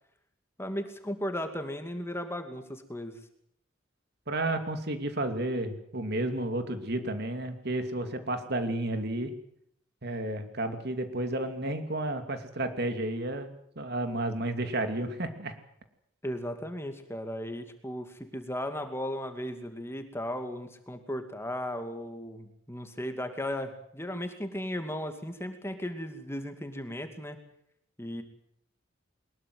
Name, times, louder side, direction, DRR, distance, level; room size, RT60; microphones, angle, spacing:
voice 1, 0.6-3.2 16.2-27.4 28.0-28.2, left 1 dB, 10° left, 7 dB, 2.4 m, -36 dB
voice 2, 4.3-9.4 10.0-15.5, right 1 dB, 55° right, 7 dB, 2.7 m, -32 dB
22.5 x 21.0 x 8.0 m, 0.71 s
head